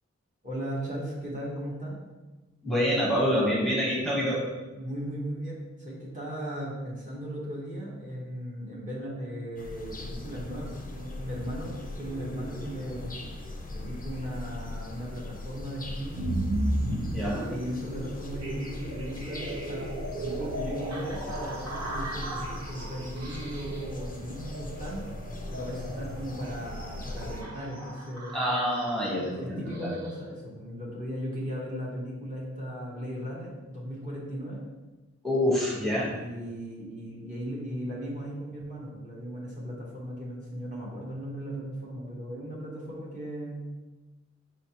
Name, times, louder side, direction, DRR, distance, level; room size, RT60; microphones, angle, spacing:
voice 1, 0.4-2.0 4.7-13.2 13.7-16.3 17.1-19.8 20.2-25.0 25.5-28.3 29.4-34.6 35.9-43.7, equal, 25° right, -6 dB, 1.0 m, -37 dB
voice 2, 2.6-4.4 17.1-17.5 28.3-29.9 35.2-36.1, equal, ahead, -7 dB, 1.1 m, -26 dB
sound 1, 9.6-27.4, left 2 dB, 30° left, 0.5 m, -40 dB
sound 2, 16.1-30.2, right 1 dB, 65° right, 0.9 m, -36 dB
4.8 x 3.1 x 2.9 m, 1.2 s
wide cardioid pair, 105°, 29 cm